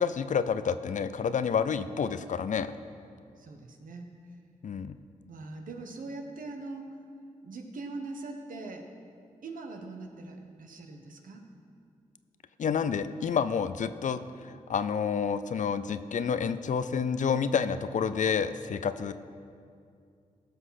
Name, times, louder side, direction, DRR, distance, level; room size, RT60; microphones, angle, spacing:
voice 1, 0.0-2.7 4.6-4.9 12.6-19.1, left 6 dB, 60° left, 12 dB, 0.6 m, -29 dB
voice 2, 3.4-4.4 5.3-7.0 7.4-8.9 9.4-11.5, right 3 dB, 75° right, 4 dB, 1.3 m, -42 dB
15.5 x 6.2 x 5.8 m, 2.4 s
supercardioid pair, 50°, 14 cm